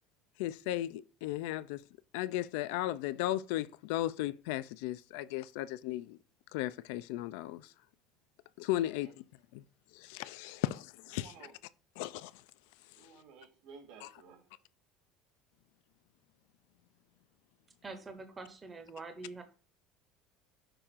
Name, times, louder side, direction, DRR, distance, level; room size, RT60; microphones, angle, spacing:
voice 1, 0.4-1.8 2.1-6.2 6.5-7.7 8.6-9.1 9.5-9.6 9.9-11.3 12.0-12.3 14.0-14.1, left 15 dB, 85° left, 0.3 m, -35 dB
voice 2, 8.8-9.1 10.4-10.7 11.1-11.5 12.9-14.4, right 5 dB, 80° right, 2.3 m, -55 dB
voice 3, 17.8-19.4, right 3 dB, 15° right, 0.7 m, -45 dB
6.7 x 2.5 x 5.6 m
cardioid pair, 165°, 0 cm